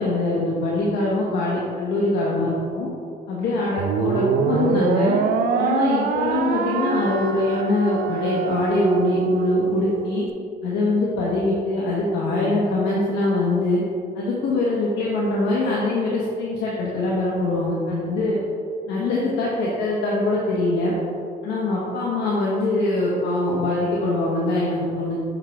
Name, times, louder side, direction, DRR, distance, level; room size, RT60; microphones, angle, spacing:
voice 1, 0.0-2.9 3.3-5.2 5.6-10.2 10.6-13.8 14.1-18.4 18.9-20.9 21.4-25.2, left 2 dB, 80° left, -5 dB, 1.1 m, -23 dB
sound 1, 3.8-10.3, right 6 dB, 60° right, 0.5 m, -24 dB
7.3 x 5.0 x 3.4 m, 2.5 s
cardioid pair, 110°, 17 cm